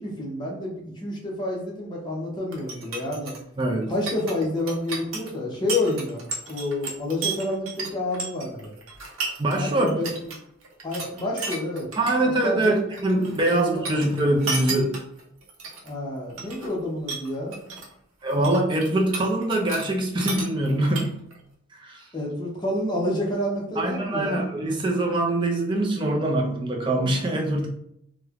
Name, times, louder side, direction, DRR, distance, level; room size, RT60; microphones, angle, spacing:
voice 1, 0.0-3.4 3.9-8.7 9.6-10.1 10.8-11.9 12.2-12.8 13.5-14.1 15.8-17.6 22.1-24.4, left 1 dB, 20° left, -3 dB, 0.6 m, -29 dB
sound 1, 2.5-9.6 9.9-10.4 10.6-12.1 12.4-13.6 13.8-15.9 16.3-16.8 17.1-17.9 18.2-19.9 20.2-21.4, right 4 dB, 85° right, 0.6 m, -33 dB
voice 2, 3.6-3.9 9.4-9.9 12.0-15.0 18.2-21.1 21.7-22.0 23.8-27.7, right 1 dB, 25° right, 0 dB, 0.3 m, -23 dB
3.0 x 2.1 x 2.3 m, 0.73 s
head